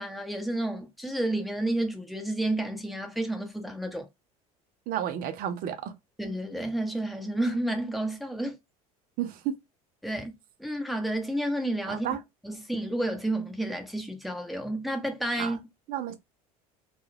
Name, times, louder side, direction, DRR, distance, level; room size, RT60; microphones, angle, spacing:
voice 1, 0.0-4.1 6.2-8.6 10.0-10.3 10.6-12.1 12.4-15.6, right 1 dB, ahead, 0.9 m, -30 dB
voice 2, 4.9-5.9 9.2-9.6 11.9-12.2 15.4-15.5 15.9-16.1, right 10 dB, 50° right, 0.7 m, -31 dB
2.3 x 2.3 x 3.2 m
hypercardioid pair, 75°, 19 cm